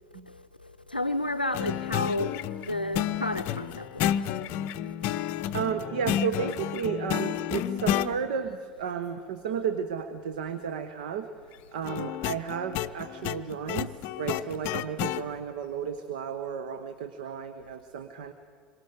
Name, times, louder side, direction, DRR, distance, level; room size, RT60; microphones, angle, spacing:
voice 1, 0.3-4.3 4.8-4.9, left 1 dB, 90° left, 0.6 m, -32 dB
sound 1, 1.5-8.1 11.8-15.2, left 11 dB, 45° left, 0.6 m, -31 dB
voice 2, 5.5-11.3 11.7-18.3, right 7 dB, 60° right, 1.0 m, -33 dB
26.5 x 23.5 x 5.1 m
figure-of-eight pair, 75°, 5 cm